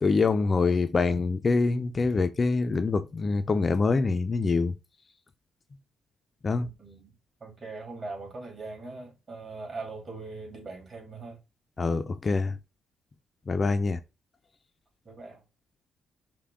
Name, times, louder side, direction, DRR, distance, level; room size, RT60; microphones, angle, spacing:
voice 1, 0.0-4.7 6.4-6.7 11.8-12.5 13.5-14.0, left 4 dB, 35° left, 0.4 m, -25 dB
voice 2, 6.5-7.1 7.4-11.4 15.0-15.4, right 3 dB, 40° right, 2.7 m, -41 dB
5.6 x 2.2 x 3.6 m
cardioid pair, 90°, 0 cm